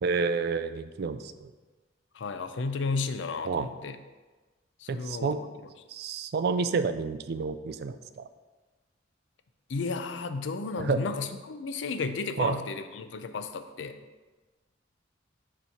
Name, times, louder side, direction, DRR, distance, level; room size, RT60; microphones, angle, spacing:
voice 1, 0.0-1.5 3.5-3.7 4.9-5.4 5.9-8.2 10.8-11.0 12.4-12.6, right 4 dB, 55° right, 11 dB, 0.4 m, -29 dB
voice 2, 2.1-4.0 4.8-5.3 9.7-13.9, left 4 dB, 70° left, 9 dB, 0.5 m, -33 dB
6.9 x 3.1 x 5.6 m, 1.3 s
head